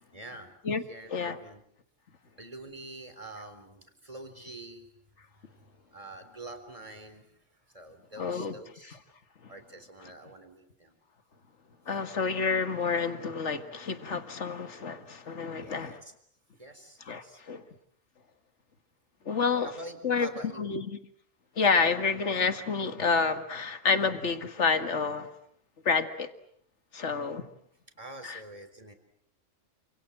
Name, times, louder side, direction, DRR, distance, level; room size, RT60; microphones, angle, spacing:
voice 1, 0.1-0.5 0.9-1.6 2.4-4.9 5.3-5.6 5.9-7.4 7.7-9.0 9.5-11.0 15.6-16.1 16.6-17.4 19.6-20.8 28.0-28.9, right 2 dB, 25° right, 7 dB, 4.0 m, -46 dB
voice 2, 8.2-8.5 8.9-9.0 11.9-16.0 17.1-17.6 19.3-19.7 20.0-20.3 20.6-21.0 21.6-25.3 25.9-26.3 26.9-27.4 28.2-28.4, left 5 dB, 65° left, 9 dB, 2.1 m, -29 dB
29.0 x 27.0 x 7.5 m, 0.67 s
omnidirectional pair, 1.3 m